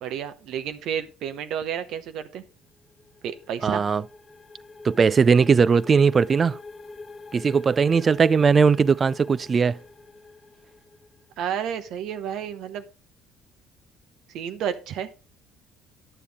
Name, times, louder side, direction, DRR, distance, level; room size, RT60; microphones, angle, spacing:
voice 1, 0.0-2.4 3.2-3.8 11.4-12.8 14.3-15.1, right 8 dB, 70° right, 0.9 m, -31 dB
sound 1, 2.7-11.4, left 3 dB, 30° left, 1.4 m, -45 dB
voice 2, 3.6-4.0 4.8-6.6 7.3-9.8, right 5 dB, 35° right, 0.3 m, -19 dB
9.9 x 7.0 x 3.5 m
supercardioid pair, 85°, 0 cm